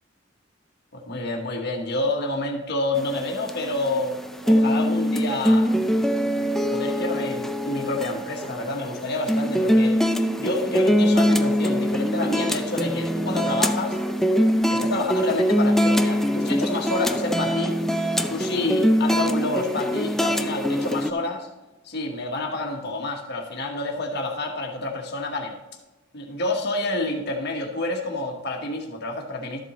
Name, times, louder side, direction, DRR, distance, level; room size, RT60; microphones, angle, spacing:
voice 1, 0.9-4.1 4.4-5.7 6.7-10.0 10.4-14.0 14.7-17.8 18.3-21.5 21.8-25.6 26.1-29.6, left 2 dB, 60° left, 1 dB, 1.3 m, -28 dB
String Claw, 3.0-21.1, equal, ahead, 0.4 m, -23 dB
13.0 x 7.9 x 3.0 m, 1.1 s
head